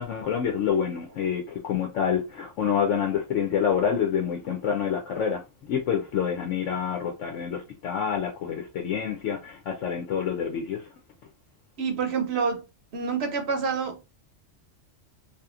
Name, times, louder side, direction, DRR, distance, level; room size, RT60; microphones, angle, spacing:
voice 1, 0.0-10.9, left 7 dB, 75° left, 1.0 m, -27 dB
voice 2, 11.8-12.6 12.9-14.0, right 5 dB, 60° right, 0.9 m, -27 dB
2.9 x 2.5 x 2.4 m
omnidirectional pair, 1.3 m